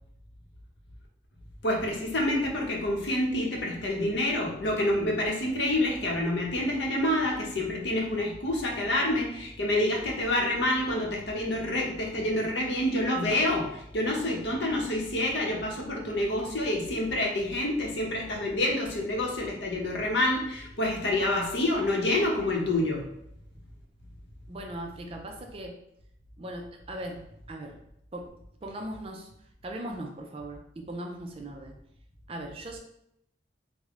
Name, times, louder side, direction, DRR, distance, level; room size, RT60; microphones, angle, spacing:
voice 1, 1.6-23.1, left 1 dB, 75° left, 0 dB, 0.8 m, -27 dB
voice 2, 24.5-25.8 26.4-27.2 27.5-27.8 28.1-28.3 28.6-29.3 29.6-31.8 32.3-32.8, right 1 dB, 30° right, 2 dB, 0.4 m, -39 dB
3.5 x 2.1 x 3.5 m, 0.78 s
head